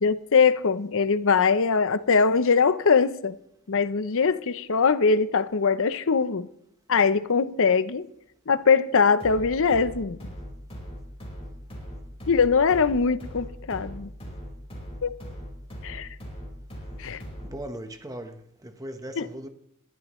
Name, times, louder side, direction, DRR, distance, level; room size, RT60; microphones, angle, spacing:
voice 1, 0.0-3.4 3.7-6.5 6.9-8.1 8.5-10.3 12.3-14.1 15.0-15.1 15.8-16.1 17.0-17.2 19.2-19.3, left 5 dB, 60° left, 0.7 m, -22 dB
sound 1, 9.2-17.7, equal, 25° left, 4.8 m, -40 dB
voice 2, 17.4-19.5, right 1 dB, 15° right, 1.1 m, -38 dB
21.5 x 12.0 x 3.2 m
head